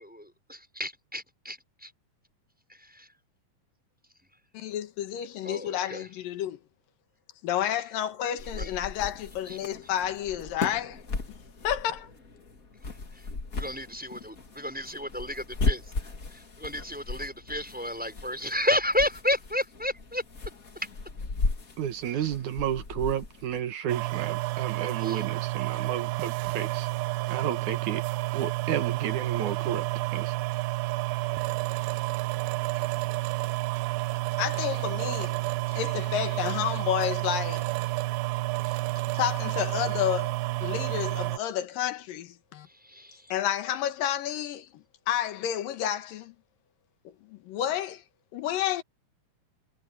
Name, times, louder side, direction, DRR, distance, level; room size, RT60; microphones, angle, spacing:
voice 1, 0.0-1.9 2.7-3.1 5.4-6.1 8.5-8.7 9.5-9.6 9.8-9.9 13.1-13.3 13.5-20.2 25.0-25.2 34.7-34.8 42.8-43.3, left 1 dB, ahead, 6.0 m, -32 dB
voice 2, 4.5-6.6 7.4-11.0 11.6-12.1 34.4-35.4 35.7-37.7 39.1-42.7 43.3-46.3 47.0-48.0 48.3-48.8, left 11 dB, 75° left, 3.0 m, -30 dB
sound 1, 8.4-23.6, left 3 dB, 30° left, 1.9 m, -36 dB
voice 3, 21.8-26.9 27.3-28.0 28.3-30.3, right 10 dB, 65° right, 2.4 m, -32 dB
sound 2, 23.9-41.4, right 20 dB, 85° right, 2.5 m, -30 dB
omnidirectional pair, 4.2 m